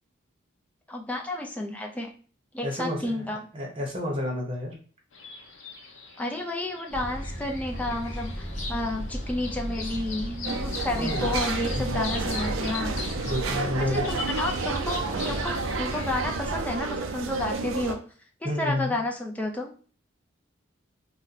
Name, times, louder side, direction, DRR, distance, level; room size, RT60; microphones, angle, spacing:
voice 1, 0.9-2.1 2.5-3.4 6.2-12.9 13.6-18.0 18.4-19.7, left 1 dB, 5° left, 1 dB, 0.4 m, -31 dB
voice 2, 2.6-3.3 3.5-4.7 11.0-11.3 11.7-12.0 13.2-14.1 18.4-19.0, left 1 dB, 25° right, -1 dB, 0.9 m, -30 dB
sound 1, 5.1-16.4, left 4 dB, 65° left, 0.6 m, -41 dB
sound 2, 6.9-16.6, equal, 35° left, 0.8 m, -35 dB
sound 3, 10.4-17.9, right 4 dB, 75° right, 0.4 m, -31 dB
2.7 x 2.2 x 3.9 m, 0.41 s
head